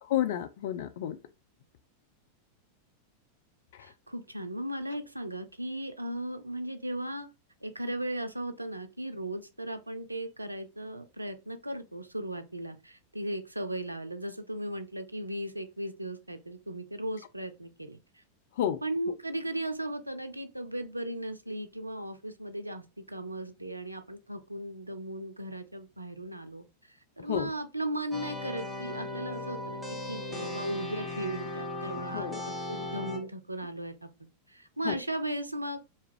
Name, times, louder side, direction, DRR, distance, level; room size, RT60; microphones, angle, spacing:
voice 1, 0.1-1.2 18.6-18.8 27.3-27.5 32.1-32.4 32.8-32.9 34.8-35.0, left 11 dB, 55° left, 0.3 m, -30 dB
voice 2, 3.8-7.3 7.6-18.0 18.8-34.1 34.5-35.8, right 1 dB, 85° right, 0.4 m, -37 dB
sound 1, 28.1-33.2, left 2 dB, 5° left, 1.0 m, -37 dB
2.6 x 2.4 x 3.1 m
figure-of-eight pair, 90°, 0 cm